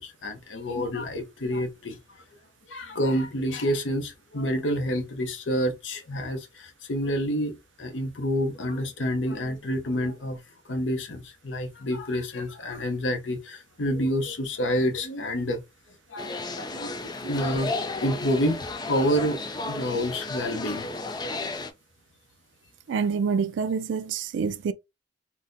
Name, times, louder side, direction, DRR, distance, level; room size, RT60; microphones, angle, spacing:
voice 1, 0.0-2.0 2.7-10.4 10.7-15.6 16.1-20.9, equal, 85° left, 0.7 m, -28 dB
sound 1, 16.2-21.7, left 2 dB, 25° left, 0.4 m, -33 dB
voice 2, 22.9-24.7, right 5 dB, 85° right, 0.3 m, -27 dB
3.9 x 2.1 x 2.5 m
head